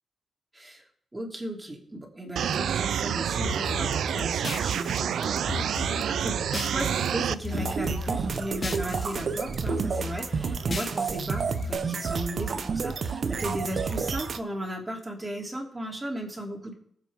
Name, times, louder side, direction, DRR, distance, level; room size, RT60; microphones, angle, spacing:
voice 1, 0.5-0.8 1.1-16.8, right 1 dB, 15° right, 0 dB, 3.0 m, -36 dB
sound 1, 2.4-7.4, right 9 dB, 85° right, 0.4 m, -28 dB
sound 2, 3.4-7.1 7.3-9.2 9.4-11.7, left 4 dB, 35° left, 1.1 m, -36 dB
sound 3, 7.5-14.4, right 5 dB, 55° right, 0.9 m, -30 dB
19.5 x 7.5 x 3.6 m, 0.67 s
cardioid pair, 100°, 0 cm